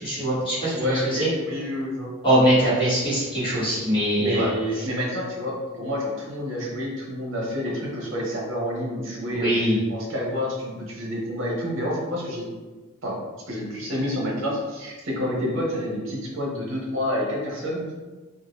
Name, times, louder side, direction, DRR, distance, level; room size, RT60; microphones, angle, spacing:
voice 1, 0.0-0.7 1.1-1.3 2.2-4.5 9.3-9.8, right 1 dB, 25° left, -10 dB, 1.2 m, -22 dB
voice 2, 0.7-2.1 4.2-12.5 13.0-13.2 13.5-17.9, left 1 dB, 65° right, -3 dB, 0.8 m, -28 dB
2.7 x 2.3 x 2.9 m, 1.3 s
head